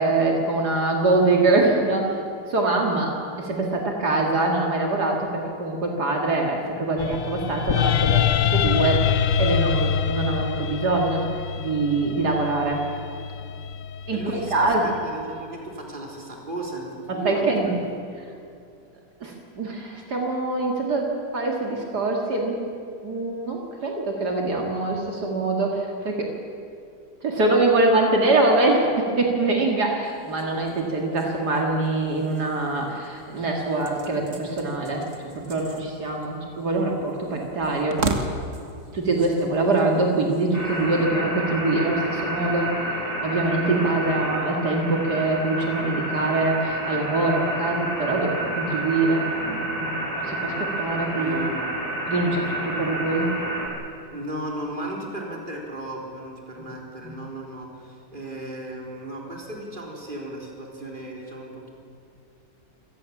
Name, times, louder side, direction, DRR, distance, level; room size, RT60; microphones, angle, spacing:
voice 1, 0.0-2.2 2.5-9.1 9.4-11.2 11.6-12.8 14.1-14.2 14.5-14.9 17.1-17.7 19.2-22.6 23.0-26.3 27.2-35.0 35.4-38.0 38.9-42.7 43.2-51.4 52.1-53.3 57.0-57.1, right 2 dB, 70° right, 0 dB, 2.8 m, -24 dB
sound 1, 7.0-15.1, left 8 dB, 60° left, 0.9 m, -25 dB
voice 2, 14.1-18.0 51.2-51.7 52.7-52.9 54.1-61.7, right 1 dB, 30° right, -1 dB, 3.9 m, -35 dB
sound 2, 30.0-41.1, right 3 dB, 45° right, 2.0 m, -37 dB
sound 3, 40.5-53.7, right 1 dB, 20° left, 4.3 m, -30 dB
27.0 x 18.0 x 7.3 m, 2.4 s
omnidirectional pair, 1.8 m